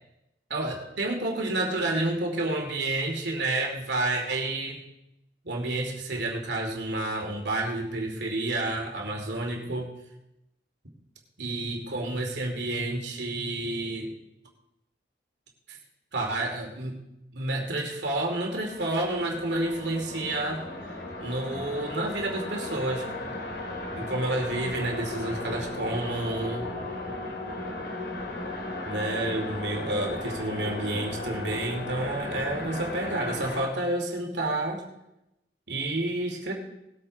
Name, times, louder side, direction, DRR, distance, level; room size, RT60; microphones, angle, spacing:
voice 1, 0.5-4.8 5.4-9.9 11.4-14.1 15.7-15.8 16.1-17.0 17.3-20.6 21.2-23.1 23.9-26.7 28.8-34.8 35.7-36.5, right 2 dB, 85° right, 1 dB, 2.5 m, -30 dB
sound 1, 18.1-33.7, left 2 dB, 75° left, 2.4 m, -36 dB
19.5 x 8.4 x 4.0 m, 0.89 s
head